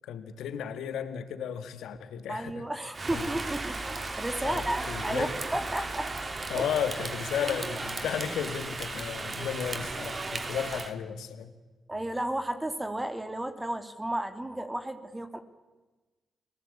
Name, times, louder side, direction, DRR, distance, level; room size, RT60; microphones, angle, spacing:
voice 1, 0.1-2.6 3.1-3.3 4.4-5.3 6.5-11.5, left 8 dB, 80° left, 10 dB, 2.0 m, -34 dB
voice 2, 2.3-6.1 6.5-6.7 11.9-15.4, right 1 dB, 20° right, 8 dB, 2.8 m, -33 dB
Rain, 2.9-10.9, right 3 dB, 40° right, 3.2 m, -35 dB
29.5 x 19.0 x 8.7 m, 1.2 s
supercardioid pair, 45°, 0 cm